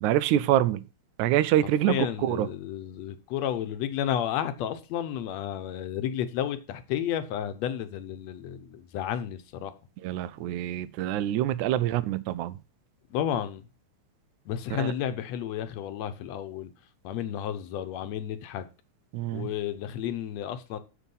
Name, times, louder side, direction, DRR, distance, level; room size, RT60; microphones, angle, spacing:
voice 1, 0.0-0.8 1.2-2.5 10.0-12.6 14.7-14.9 19.1-19.5, right 12 dB, 85° right, 2.0 m, -26 dB
voice 2, 1.8-9.7 13.1-13.6 14.5-16.7 17.0-18.6 19.3-20.8, left 10 dB, 70° left, 1.9 m, -32 dB
7.1 x 6.8 x 5.4 m
omnidirectional pair, 3.4 m